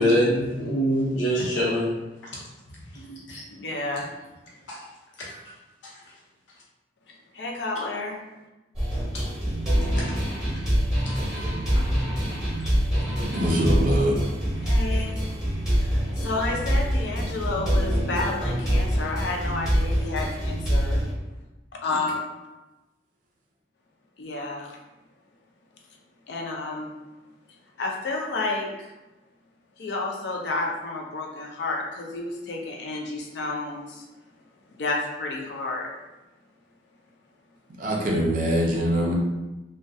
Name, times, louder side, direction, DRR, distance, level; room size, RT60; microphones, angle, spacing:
voice 1, 0.0-2.0 2.2-2.3 3.1-3.4 4.7-4.8 5.2-5.3 5.8-5.9 9.1-9.3 11.7-11.8, equal, 85° left, -5 dB, 0.8 m, -24 dB
voice 2, 3.5-4.1 7.1-8.2 14.6-15.2 15.7-21.0 21.8-22.3 24.2-24.8 26.3-26.9 27.8-28.9 29.8-34.1 34.8-35.9, left 3 dB, 65° left, 0 dB, 0.4 m, -31 dB
sound 1, 8.8-21.1, equal, 5° right, 0.8 m, -25 dB
voice 3, 13.3-14.2 37.8-39.1, equal, 45° right, -1 dB, 0.5 m, -23 dB
2.3 x 2.1 x 2.6 m, 1.0 s
head